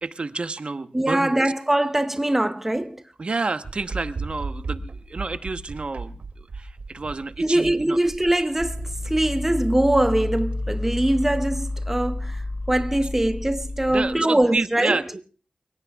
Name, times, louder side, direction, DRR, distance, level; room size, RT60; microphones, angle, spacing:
voice 1, 0.0-1.4 3.2-8.0 13.9-15.2, right 3 dB, 45° right, 1.0 m, -29 dB
voice 2, 0.9-3.0 7.4-15.0, right 1 dB, 10° right, 0.8 m, -22 dB
sound 1, 3.6-10.5, right 3 dB, 75° right, 2.4 m, -36 dB
sound 2, 8.6-14.1, left 2 dB, 25° left, 4.7 m, -30 dB
29.0 x 17.5 x 2.3 m
wide cardioid pair, 100°, 3 cm